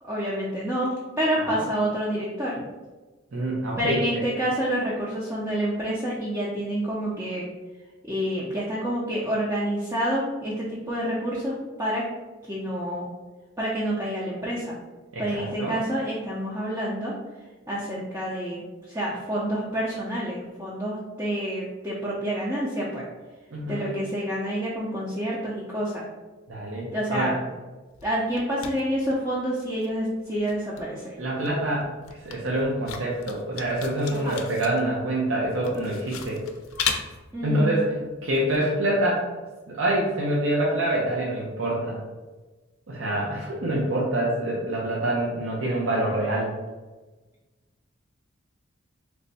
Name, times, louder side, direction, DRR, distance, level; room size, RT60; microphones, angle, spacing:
voice 1, 0.0-2.6 3.8-7.5 8.1-12.1 12.5-13.1 13.6-14.7 15.2-17.1 17.7-23.0 23.7-26.0 26.9-27.3 28.0-31.1 34.1-34.4 37.3-37.9, equal, 15° right, -7 dB, 0.5 m, -28 dB
voice 2, 3.3-4.0 15.1-15.8 23.5-23.9 26.5-27.4 31.2-31.9 32.2-36.4 37.4-39.3 39.7-42.0 42.9-46.5, right 1 dB, 70° right, -4 dB, 0.6 m, -26 dB
sound 1, 27.9-29.5 29.8-38.6, left 7 dB, 85° left, 0.4 m, -36 dB
3.3 x 2.1 x 4.0 m, 1.2 s
head